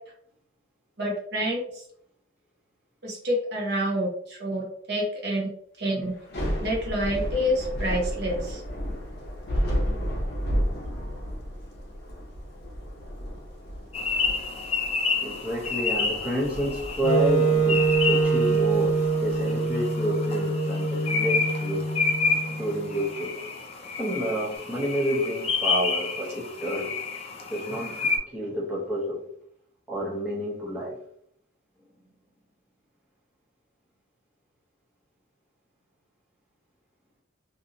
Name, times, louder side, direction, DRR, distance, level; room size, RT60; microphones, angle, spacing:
voice 1, 1.0-1.8 3.0-5.5 5.8-6.1 6.6-8.9, equal, 50° right, -3 dB, 0.9 m, -28 dB
Thunder / Rain, 6.1-19.3, equal, 50° left, 0.8 m, -32 dB
voice 2, 10.9-11.3 15.2-21.9 22.3-23.4 24.0-26.9 27.5-29.2 29.9-31.0, equal, 5° right, -8 dB, 0.7 m, -29 dB
sound 1, 13.9-28.2, left 4 dB, 30° left, 0.4 m, -30 dB
Wind instrument woodwind instrument, 17.0-23.1, right 4 dB, 85° left, 0.7 m, -25 dB
2.7 x 2.6 x 2.6 m, 0.67 s
head